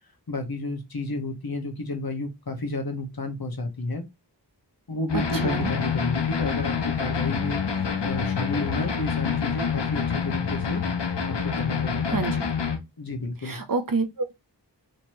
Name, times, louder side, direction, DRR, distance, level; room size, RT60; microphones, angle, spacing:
voice 1, 0.3-4.0 4.9-10.8 11.4-12.2 13.0-13.6, left 2 dB, 60° left, 1.2 m, -31 dB
sound 1, 5.1-12.8, left 6 dB, 80° left, 0.7 m, -27 dB
voice 2, 5.3-5.7 12.1-12.5 13.4-14.3, right 4 dB, 55° right, 0.7 m, -28 dB
3.0 x 2.9 x 4.4 m
wide cardioid pair, 45°, 41 cm